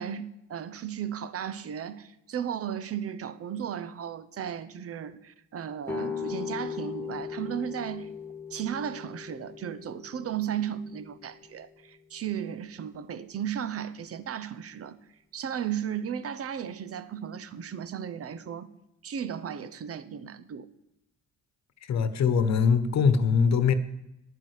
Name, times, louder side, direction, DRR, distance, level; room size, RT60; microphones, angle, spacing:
voice 1, 0.0-8.1 8.5-15.0 15.3-18.7 19.0-20.7, right 9 dB, 50° right, 0.9 m, -35 dB
sound 1, 5.8-11.6, left 6 dB, 10° left, 1.7 m, -38 dB
voice 2, 21.8-23.7, left 6 dB, 60° left, 1.2 m, -22 dB
11.0 x 9.4 x 6.5 m
cardioid pair, 90°, 30 cm